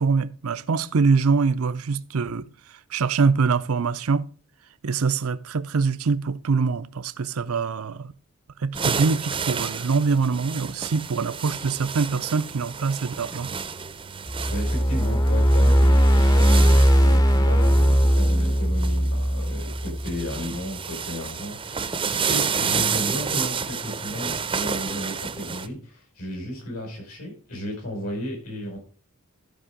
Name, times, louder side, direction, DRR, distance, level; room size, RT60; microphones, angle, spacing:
voice 1, 0.0-2.5 2.9-4.3 4.8-8.1 8.6-13.5, right 4 dB, 75° right, 0.6 m, -24 dB
sound 1, 8.7-25.7, right 6 dB, 25° right, 0.6 m, -31 dB
sound 2, 14.3-20.5, equal, 15° left, 0.7 m, -19 dB
voice 2, 14.5-28.8, equal, 75° left, 5.8 m, -33 dB
14.0 x 5.5 x 5.0 m
head